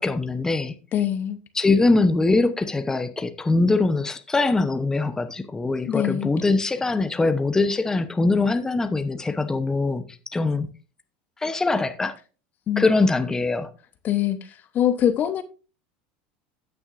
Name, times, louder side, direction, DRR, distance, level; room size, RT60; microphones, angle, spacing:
voice 1, 0.0-0.7 1.5-10.7 11.4-12.2 12.8-13.7, left 3 dB, 10° left, 0.9 m, -22 dB
voice 2, 0.9-1.4 5.9-6.3 12.7-12.8 14.0-14.4 14.7-15.4, left 10 dB, 40° left, 0.9 m, -23 dB
16.0 x 6.1 x 2.6 m
supercardioid pair, 115°, 5 cm